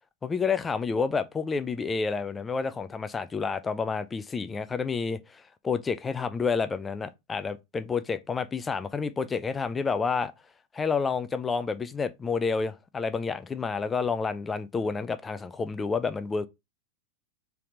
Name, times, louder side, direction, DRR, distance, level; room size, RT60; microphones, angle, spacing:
voice 1, 0.2-10.3 10.7-16.5, left 5 dB, 15° left, 0.4 m, -29 dB
4.1 x 3.4 x 3.7 m
figure-of-eight pair, 90°, 0 cm